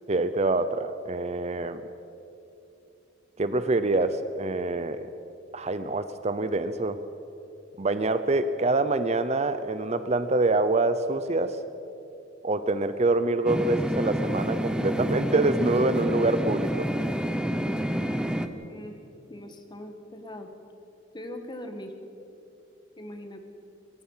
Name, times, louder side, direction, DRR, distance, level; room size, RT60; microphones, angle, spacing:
voice 1, 0.1-1.8 3.4-5.1 5.5-7.0 7.8-11.6 12.4-16.9, right 2 dB, 35° right, 11 dB, 0.7 m, -25 dB
sound 1, 13.5-18.5, equal, 5° right, 0.8 m, -28 dB
voice 2, 18.7-19.0 19.3-20.5 21.1-21.9 23.0-23.4, left 1 dB, 25° left, 5 dB, 1.8 m, -40 dB
23.0 x 21.0 x 5.7 m, 2.8 s
head